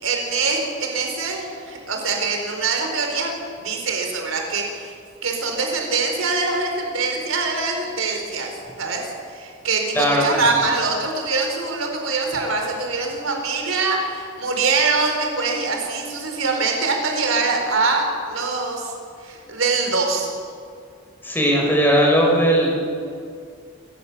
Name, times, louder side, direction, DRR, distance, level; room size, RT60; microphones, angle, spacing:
voice 1, 0.0-4.9 5.2-8.5 8.8-18.9 19.2-20.3, right 4 dB, 90° right, 2 dB, 4.6 m, -23 dB
voice 2, 9.9-10.4 21.2-22.8, equal, 10° left, -1 dB, 5.0 m, -18 dB
28.5 x 14.5 x 7.6 m, 2.3 s
head